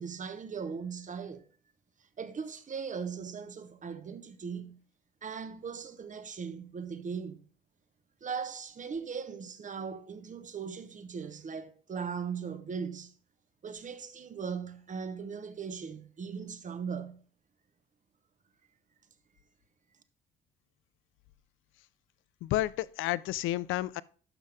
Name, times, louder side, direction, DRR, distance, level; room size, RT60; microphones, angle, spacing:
voice 1, 0.0-1.4 2.2-4.8 5.2-7.4 8.2-13.1 13.6-17.2, right 6 dB, 40° right, 1.0 m, -39 dB
voice 2, 22.4-24.0, left 15 dB, 85° left, 0.4 m, -31 dB
11.5 x 5.6 x 3.4 m
cardioid pair, 90°, 20 cm